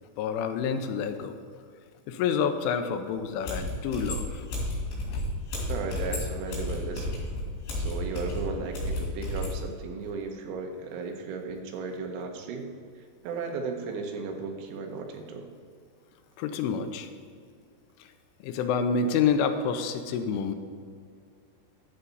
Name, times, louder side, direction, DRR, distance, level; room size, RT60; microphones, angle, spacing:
voice 1, 0.2-1.4 2.1-4.5 16.4-17.1 18.0-18.1 18.4-20.6, left 6 dB, 90° left, 8 dB, 3.2 m, -28 dB
sound 1, 3.4-9.6, left 1 dB, 65° left, 4.9 m, -32 dB
voice 2, 5.7-7.2 7.8-12.7 13.2-15.5, right 4 dB, 80° right, 3 dB, 3.4 m, -35 dB
11.0 x 8.3 x 4.0 m, 2.2 s
omnidirectional pair, 5.6 m